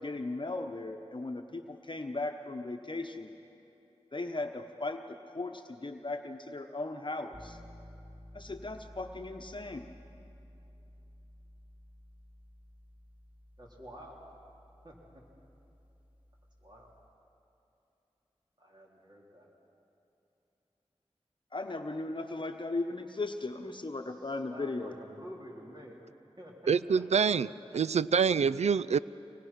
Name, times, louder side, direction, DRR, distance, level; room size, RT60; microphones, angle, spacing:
voice 1, 0.0-3.3 4.1-7.6 8.3-9.9 21.5-24.9, left 2 dB, 45° left, 5 dB, 1.0 m, -37 dB
sound 1, 7.3-17.1, equal, 15° right, 3.2 m, -54 dB
voice 2, 13.6-14.2 14.8-15.0 16.6-16.9 18.6-19.5 24.5-26.0 26.4-27.2 27.7-27.8, equal, 40° right, -3 dB, 4.0 m, -49 dB
voice 3, 26.7-27.5 27.7-29.0, right 6 dB, 85° right, 18 dB, 0.4 m, -26 dB
24.5 x 20.0 x 6.0 m, 2.8 s
cardioid pair, 40°, 11 cm